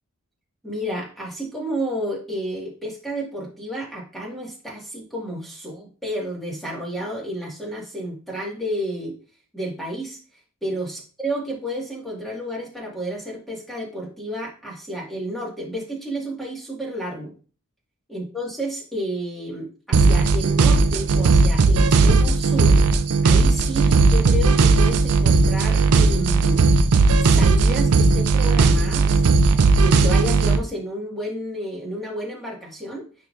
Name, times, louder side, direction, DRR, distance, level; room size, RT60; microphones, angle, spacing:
voice 1, 0.6-9.1 9.5-10.2 10.6-17.3 18.1-22.8 23.2-26.7 27.2-29.2 29.8-33.1, equal, ahead, -3 dB, 1.7 m, -31 dB
sound 1, 19.9-30.6, right 3 dB, 85° right, 0.5 m, -16 dB
10.0 x 3.7 x 2.5 m, 0.38 s
head